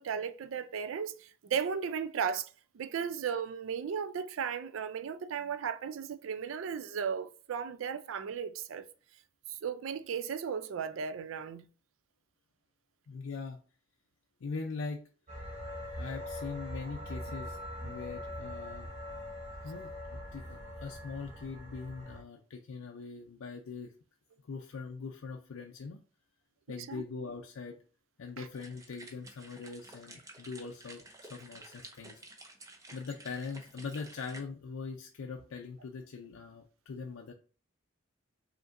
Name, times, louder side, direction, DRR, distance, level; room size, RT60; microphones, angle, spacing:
voice 1, 0.0-8.9 9.5-11.7 17.8-18.0 26.9-27.0 28.4-28.5, right 7 dB, 75° right, 0.4 m, -36 dB
voice 2, 13.1-13.6 14.4-15.1 16.0-17.6 17.8-19.2 19.6-23.9 24.4-26.0 26.7-27.8 28.2-32.2 32.9-37.3, left 4 dB, 85° left, 0.4 m, -42 dB
sound 1, 15.3-22.2, left 1 dB, 35° right, 0.8 m, -42 dB
sound 2, 28.5-34.4, right 2 dB, 15° right, 0.5 m, -52 dB
5.1 x 2.9 x 2.5 m
head